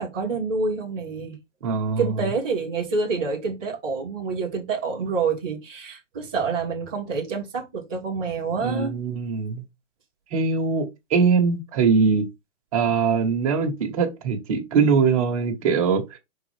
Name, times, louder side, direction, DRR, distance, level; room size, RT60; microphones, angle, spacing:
voice 1, 0.0-1.4 2.0-8.9, right 4 dB, 5° right, 0.5 m, -27 dB
voice 2, 1.6-2.1 8.6-9.6 10.3-12.2 12.7-16.2, right 5 dB, 30° right, 1.6 m, -22 dB
5.8 x 4.6 x 3.5 m
hypercardioid pair, 170°, 37 cm